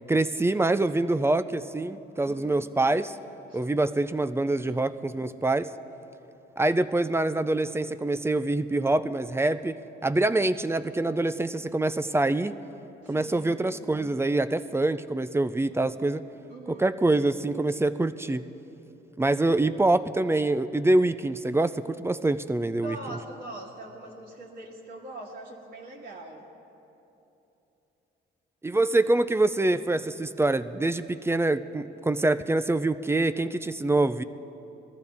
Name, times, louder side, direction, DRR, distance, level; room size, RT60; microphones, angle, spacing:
voice 1, 0.1-3.1 3.5-5.7 6.6-12.5 13.1-16.2 16.7-18.4 19.2-23.0 28.6-34.2, right 2 dB, 10° right, 12 dB, 0.4 m, -25 dB
voice 2, 2.2-2.7 3.5-3.6 4.6-4.8 13.0-13.6 16.5-16.9 22.8-26.5, right 2 dB, 55° right, -5 dB, 2.0 m, -42 dB
21.5 x 14.5 x 3.5 m, 3.0 s
cardioid pair, 90°, 20 cm